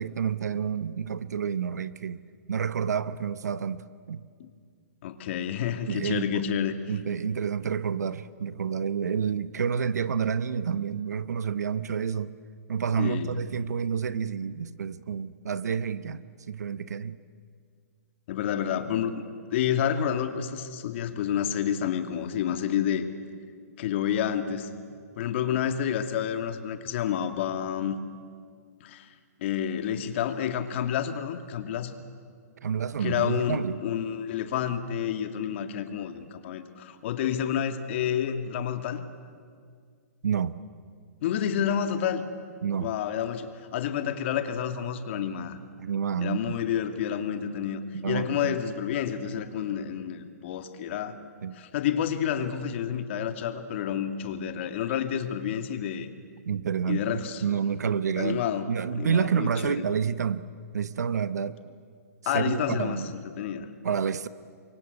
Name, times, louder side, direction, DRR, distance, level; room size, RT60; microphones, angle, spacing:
voice 1, 0.0-2.2 2.5-4.2 5.9-6.5 6.9-12.3 12.7-17.2 32.6-33.8 40.2-40.6 42.6-42.9 45.8-46.6 47.9-48.6 51.4-51.6 56.4-60.5 60.7-61.6 62.3-63.1 63.8-64.3, right 7 dB, 90° right, 1.0 m, -29 dB
voice 2, 5.0-6.7 13.0-13.3 18.3-19.2 19.5-23.1 23.8-24.7 25.2-28.0 28.8-29.1 29.4-31.9 33.0-39.0 41.2-42.2 42.7-45.6 46.2-47.8 48.1-51.2 51.6-56.1 56.9-57.4 58.2-59.8 62.3-63.0 63.4-63.7, left 9 dB, 45° left, 2.2 m, -29 dB
29.0 x 24.5 x 8.1 m
hypercardioid pair, 155°, 9 cm